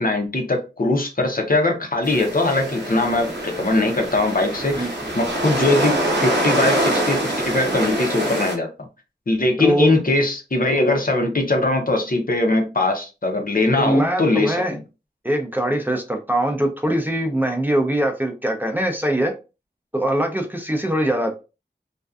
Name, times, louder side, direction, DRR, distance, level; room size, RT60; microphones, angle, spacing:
voice 1, 0.0-4.9 5.1-8.7 9.3-14.6, left 2 dB, 55° left, 0.6 m, -21 dB
sound 1, 2.0-8.6, right 1 dB, 90° right, 0.8 m, -24 dB
voice 2, 9.6-9.9 13.8-14.8 15.2-19.3 19.9-21.4, right 1 dB, 10° right, 0.5 m, -22 dB
2.5 x 2.2 x 2.3 m
wide cardioid pair, 40°, 18 cm